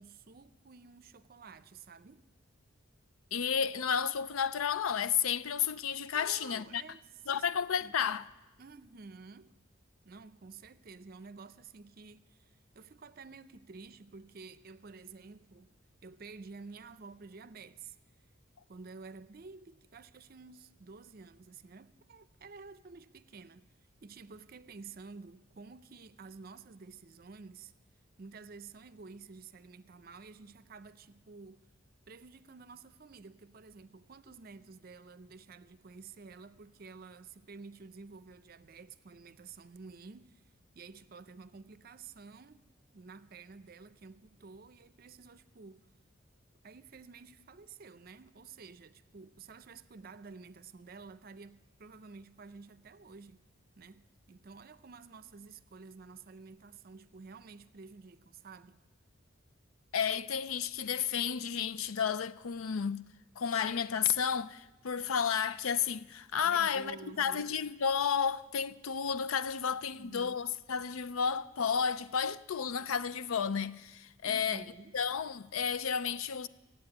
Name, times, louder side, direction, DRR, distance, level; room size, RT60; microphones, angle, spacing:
voice 1, 0.0-2.3 6.1-7.0 7.3-8.1 8.6-9.6 10.0-12.4 12.7-15.7 16.0-18.0 18.7-23.7 24.0-27.7 28.2-31.7 32.1-40.4 40.7-42.6 42.9-45.9 46.6-53.4 53.8-58.8 66.4-67.6 69.9-70.4 74.2-75.0, right 4 dB, 45° right, 0.5 m, -51 dB
voice 2, 3.3-6.8 7.3-8.3 59.9-63.1 63.4-74.6 74.9-76.5, left 7 dB, 90° left, 0.5 m, -32 dB
16.0 x 8.5 x 8.7 m
head